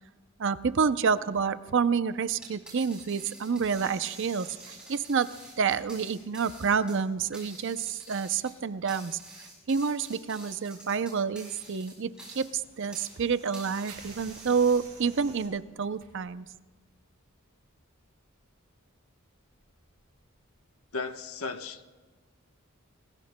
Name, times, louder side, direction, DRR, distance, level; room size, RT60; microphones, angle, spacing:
voice 1, 0.4-5.3 5.6-9.2 9.7-12.1 12.3-16.5, right 6 dB, 60° right, 13 dB, 0.5 m, -28 dB
sound 1, 2.3-13.2 13.5-15.1, right 1 dB, 5° right, 6.2 m, -48 dB
sound 2, 3.7-6.6 7.2-7.3 8.2-8.4 10.6-15.5, right 5 dB, 35° right, 4.5 m, -53 dB
sound 3, 13.9-21.0, right 4 dB, 80° right, 4.9 m, -56 dB
voice 2, 20.9-21.9, left 4 dB, 80° left, 6 dB, 1.1 m, -35 dB
26.5 x 19.5 x 2.2 m, 1.3 s
head